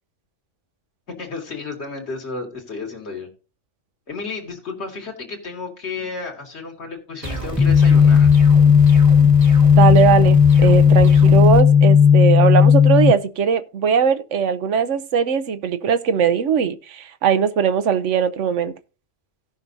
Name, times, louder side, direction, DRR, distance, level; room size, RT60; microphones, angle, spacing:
voice 1, 1.1-3.3 4.1-8.3, left 4 dB, 60° left, 2.4 m, -32 dB
sound 1, 7.2-11.6, equal, 25° right, 1.3 m, -29 dB
sound 2, 7.6-13.1, left 7 dB, 5° right, 0.7 m, -13 dB
voice 2, 9.8-18.7, right 7 dB, 75° right, 1.1 m, -19 dB
17.0 x 5.8 x 2.7 m
omnidirectional pair, 1.3 m